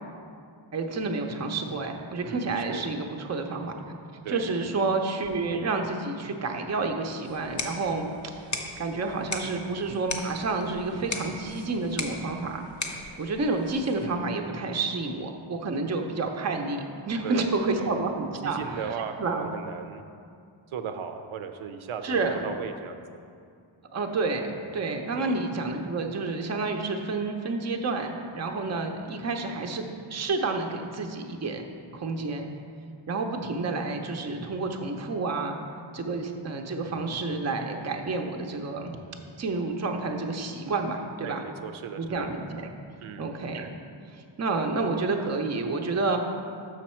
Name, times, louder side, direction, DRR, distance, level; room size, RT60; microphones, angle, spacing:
voice 1, 0.7-4.0 4.3-8.4 8.8-12.6 13.2-19.5 22.0-22.4 23.9-31.7 31.9-32.5 33.1-35.6 35.9-39.0 39.4-41.4 42.0-42.7 43.2-43.7 44.1-46.2, right 3 dB, 35° right, 4 dB, 0.5 m, -29 dB
voice 2, 2.3-2.9 4.2-4.5 17.2-17.5 17.8-17.9 18.4-20.0 20.7-23.2 25.2-25.4 41.2-42.3 43.0-43.3, right 7 dB, 85° right, 7 dB, 0.6 m, -36 dB
sound 1, 7.3-14.2, left 2 dB, 40° left, 0.7 m, -38 dB
6.4 x 6.2 x 4.3 m, 2.4 s
wide cardioid pair, 135°, 48 cm